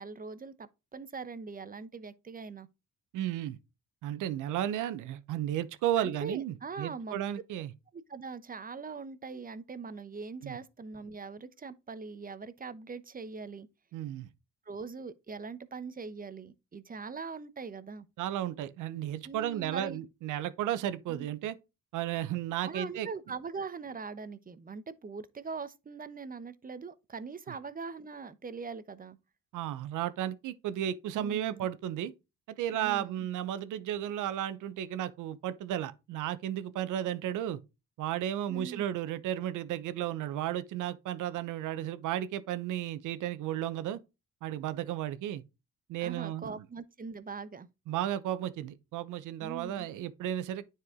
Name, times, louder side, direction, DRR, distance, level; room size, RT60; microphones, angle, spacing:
voice 1, 0.0-2.7 6.0-7.2 7.9-13.7 14.7-18.1 19.2-20.0 21.1-21.3 22.6-29.2 31.1-31.7 32.7-33.3 38.5-38.9 46.0-47.7 49.4-49.9, right 4 dB, 30° right, 0.8 m, -42 dB
voice 2, 3.1-3.6 4.0-7.7 10.4-10.6 13.9-14.3 18.2-21.6 21.9-23.1 29.5-32.1 32.5-37.6 38.0-44.0 44.4-45.4 45.9-46.6 47.9-50.7, right 11 dB, 85° right, 0.9 m, -34 dB
9.6 x 4.6 x 3.6 m
cardioid pair, 90°, 30 cm